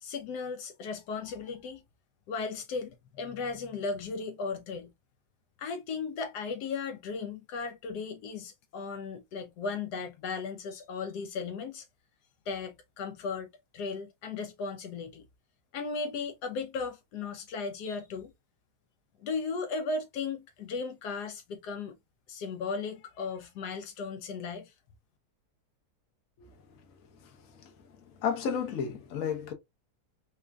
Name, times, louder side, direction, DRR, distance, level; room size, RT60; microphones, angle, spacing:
voice 1, 0.0-1.8 2.3-4.9 5.6-11.9 12.5-13.5 13.7-15.2 15.7-18.3 19.2-22.0 22.3-24.7, left 4 dB, 80° left, 1.2 m, -36 dB
voice 2, 28.2-29.5, left 7 dB, 60° left, 1.2 m, -31 dB
4.2 x 2.4 x 2.3 m
omnidirectional pair, 1.8 m